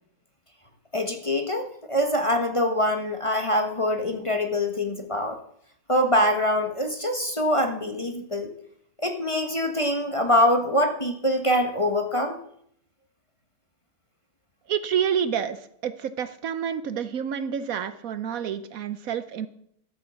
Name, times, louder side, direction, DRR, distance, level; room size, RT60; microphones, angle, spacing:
voice 1, 0.9-5.4 5.9-8.5 9.0-12.4, left 1 dB, 20° left, 5 dB, 1.1 m, -24 dB
voice 2, 14.7-19.5, right 8 dB, 65° right, 13 dB, 1.1 m, -28 dB
13.0 x 8.5 x 7.1 m, 0.69 s
omnidirectional pair, 1.7 m